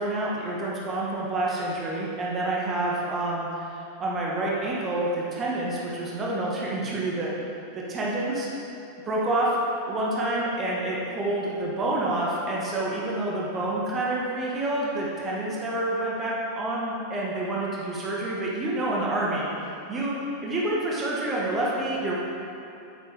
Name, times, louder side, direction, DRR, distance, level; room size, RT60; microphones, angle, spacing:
voice 1, 0.0-8.5 9.1-9.6 9.9-20.1 20.4-22.1, right 2 dB, 25° right, -5 dB, 1.8 m, -28 dB
9.8 x 8.7 x 3.7 m, 2.7 s
figure-of-eight pair, 90°, 0 cm